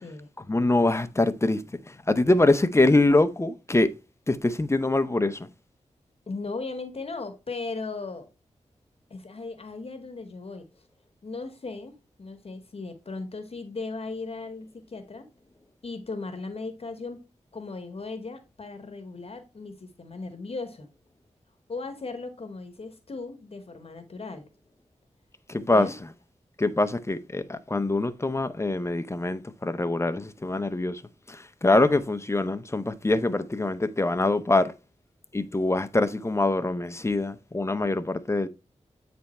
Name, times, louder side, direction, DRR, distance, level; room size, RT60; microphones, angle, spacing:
voice 1, 0.5-3.9 4.3-5.5 25.5-26.0 26.6-31.0 31.3-34.7 35.3-38.5, left 2 dB, 20° left, 0.7 m, -24 dB
voice 2, 6.3-8.3 9.1-10.7 11.2-11.9 12.2-15.3 15.8-17.2 17.5-20.9 21.7-24.5 25.6-26.0, left 3 dB, 50° left, 1.1 m, -37 dB
8.7 x 3.4 x 4.2 m
cardioid pair, 60°, 13 cm